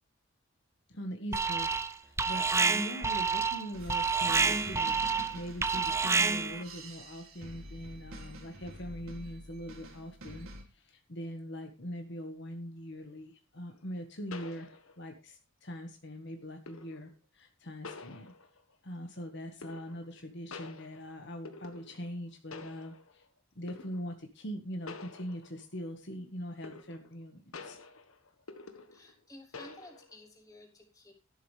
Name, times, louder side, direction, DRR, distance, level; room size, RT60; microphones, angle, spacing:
voice 1, 0.9-1.7 2.0-18.3 18.8-23.2 23.5-27.8, equal, 55° left, 5 dB, 1.5 m, -42 dB
Alarm, 1.3-1.9 2.2-6.6, right 4 dB, 15° right, 0.6 m, -28 dB
sound 1, 3.7-10.6, right 1 dB, 90° right, 3.6 m, -47 dB
sound 2, 13.7-13.8 14.3-15.2 16.7-17.1 17.8-18.7 19.6-20.2 20.5-22.2 22.5-23.2 23.7-24.1 24.9-25.8 26.6-27.2 27.5-29.2 29.5-30.2, left 4 dB, 85° left, 1.6 m, -48 dB
voice 2, 28.9-31.1, left 1 dB, 15° left, -1 dB, 3.4 m, -53 dB
13.5 x 12.0 x 3.3 m, 0.31 s
head